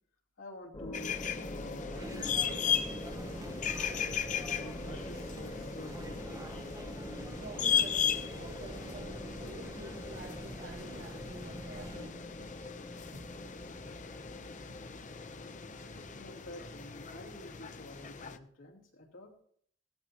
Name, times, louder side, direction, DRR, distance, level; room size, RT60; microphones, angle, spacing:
voice 1, 0.4-3.1 4.0-6.5 16.0-19.3, left 1 dB, 85° left, -2 dB, 2.7 m, -49 dB
sound 1, 0.7-17.8, left 1 dB, 25° left, 1.4 m, -45 dB
sound 2, 0.9-18.4, left 8 dB, 40° left, 0.7 m, -37 dB
sound 3, 1.9-12.1, right 1 dB, 20° right, 0.7 m, -47 dB
voice 2, 7.3-12.7 13.1-13.2 13.8-13.9 14.7-14.8, right 2 dB, 85° right, -7 dB, 2.6 m, -49 dB
17.5 x 13.0 x 2.9 m, 0.62 s
head